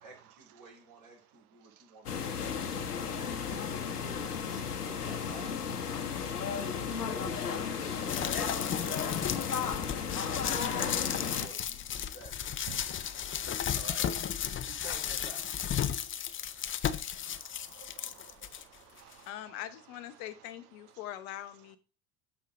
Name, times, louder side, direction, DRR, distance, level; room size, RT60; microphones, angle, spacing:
voice 1, 0.0-2.3 3.2-5.6 6.0-7.2 7.9-10.5 11.1-12.4 13.7-14.1 14.7-15.4, right 3 dB, 45° right, 4.4 m, -52 dB
sound 1, 2.1-11.5, left 6 dB, 90° left, 1.1 m, -34 dB
sound 2, 8.1-18.6 19.1-19.2, left 9 dB, 25° left, 0.7 m, -34 dB
voice 2, 12.7-13.2 17.3-18.5 19.0-19.2, right 9 dB, 75° right, 1.0 m, -52 dB
voice 3, 19.3-21.8, left 12 dB, 65° left, 1.2 m, -42 dB
7.3 x 4.4 x 6.1 m
hypercardioid pair, 70°, 45 cm